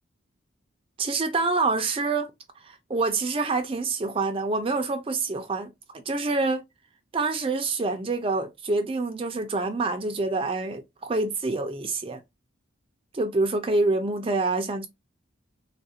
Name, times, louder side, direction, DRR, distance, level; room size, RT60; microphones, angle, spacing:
voice 1, 1.0-2.3 2.6-6.6 7.1-12.2 13.1-14.9, right 3 dB, 25° right, 0.4 m, -26 dB
3.5 x 2.4 x 2.6 m
head